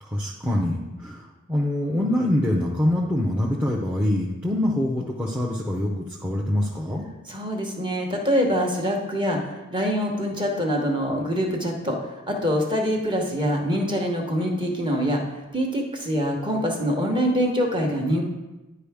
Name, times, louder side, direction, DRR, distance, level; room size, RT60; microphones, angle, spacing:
voice 1, 0.0-7.1, left 1 dB, 5° right, -3 dB, 0.6 m, -25 dB
voice 2, 7.3-18.2, equal, 20° right, 0 dB, 1.0 m, -25 dB
10.0 x 4.7 x 3.5 m, 1.1 s
head